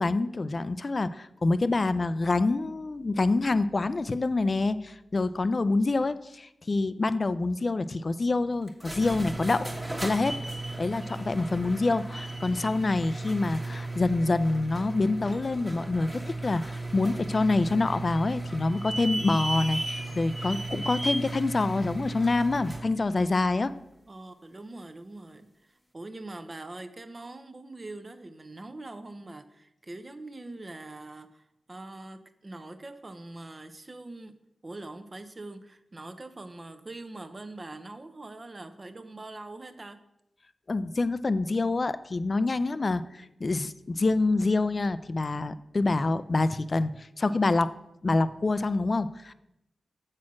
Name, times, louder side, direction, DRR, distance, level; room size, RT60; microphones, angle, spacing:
voice 1, 0.0-9.7 10.0-10.4 10.8-23.7 40.7-47.7 48.0-49.3, left 3 dB, 50° left, 14 dB, 0.4 m, -26 dB
sound 1, 8.7-22.9, right 2 dB, 20° right, 1.3 m, -35 dB
voice 2, 24.1-34.3 34.6-40.0, right 2 dB, 40° right, 10 dB, 0.7 m, -43 dB
7.3 x 4.4 x 6.1 m, 0.84 s
cardioid pair, 40°, 0 cm